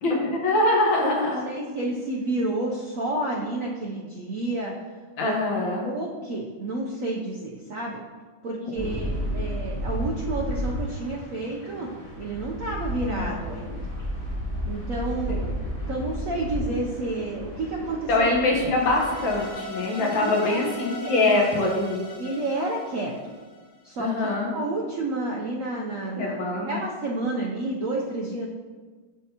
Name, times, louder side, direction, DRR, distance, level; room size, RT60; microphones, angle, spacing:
voice 1, 0.0-1.5 5.2-5.9 8.5-9.0 13.1-13.5 15.3-15.5 18.1-22.0 24.0-24.5 26.2-26.9, left 2 dB, 75° left, -1 dB, 1.8 m, -24 dB
voice 2, 1.0-4.7 5.2-5.4 5.8-8.0 8.4-11.9 12.2-13.9 14.6-15.6 15.9-18.3 20.0-20.6 21.0-21.1 22.2-23.1 23.8-24.1 24.5-28.5, right 2 dB, 75° right, -1 dB, 0.7 m, -30 dB
sound 1, 8.8-19.5, equal, 90° left, 2.9 m, -32 dB
sound 2, 18.7-23.9, left 3 dB, 35° left, 1.5 m, -39 dB
11.0 x 3.7 x 2.8 m, 1.4 s
omnidirectional pair, 2.1 m